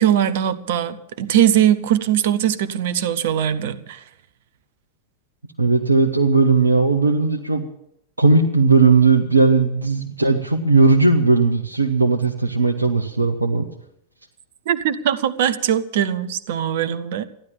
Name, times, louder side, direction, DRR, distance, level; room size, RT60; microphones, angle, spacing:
voice 1, 0.0-4.0 14.7-17.2, right 10 dB, 55° right, 14 dB, 1.0 m, -20 dB
voice 2, 5.6-7.7 8.2-13.7, right 3 dB, 80° right, 3 dB, 1.1 m, -17 dB
15.0 x 11.5 x 7.3 m, 0.77 s
figure-of-eight pair, 90°, 0 cm